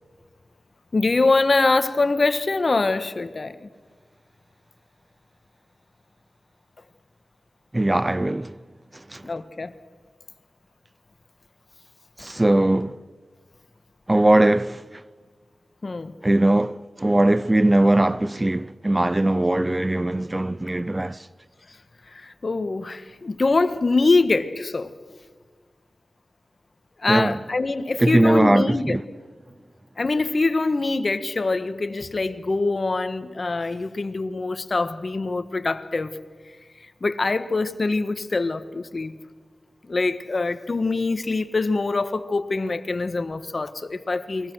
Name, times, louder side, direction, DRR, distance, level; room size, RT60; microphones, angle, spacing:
voice 1, 0.9-3.7 9.2-9.7 15.8-16.1 21.7-21.8 22.1-24.9 27.0-29.0 30.0-36.2 36.8-39.1 39.9-44.5, left 3 dB, 50° left, 1.6 m, -24 dB
voice 2, 7.7-8.6 8.9-9.3 12.2-13.0 14.1-15.0 16.2-21.3 27.1-27.4 28.0-29.0, right 1 dB, 25° right, 0.7 m, -20 dB
29.5 x 22.5 x 6.4 m
cardioid pair, 45°, 0 cm